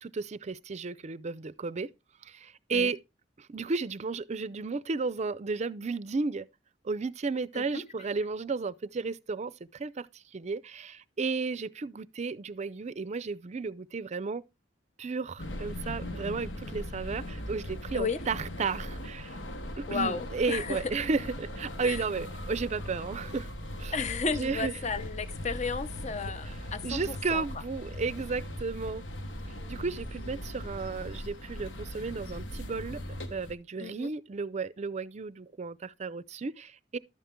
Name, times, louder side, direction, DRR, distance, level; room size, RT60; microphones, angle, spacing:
voice 1, 0.0-1.9 2.2-3.0 3.4-6.5 6.8-14.4 15.0-19.4 19.8-23.5 23.8-24.0 24.3-24.7 26.5-26.6 26.8-29.1 29.7-33.0 33.3-37.0, right 4 dB, 40° right, 0.5 m, -33 dB
sound 1, 15.4-33.5, left 1 dB, 85° left, 1.2 m, -39 dB
voice 2, 19.9-20.8 21.8-22.0 23.9-27.4 33.8-34.1, left 4 dB, 40° left, 0.8 m, -33 dB
12.0 x 7.0 x 3.6 m
head